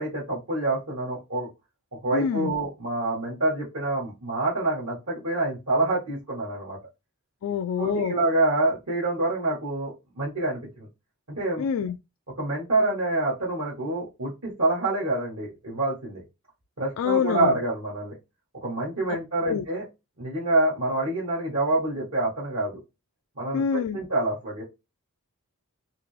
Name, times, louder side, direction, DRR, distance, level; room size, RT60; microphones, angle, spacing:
voice 1, 0.0-1.5 2.0-6.8 7.8-10.9 11.4-11.6 12.4-16.2 16.8-18.2 18.6-19.8 20.2-22.8 23.4-23.6 23.9-24.6, right 2 dB, 70° right, 1.5 m, -26 dB
voice 2, 2.1-2.5 7.4-8.2 11.6-12.0 17.0-17.6 19.1-19.2 19.4-19.6 23.5-24.0, left 7 dB, 75° left, 0.3 m, -26 dB
3.7 x 2.8 x 3.2 m
head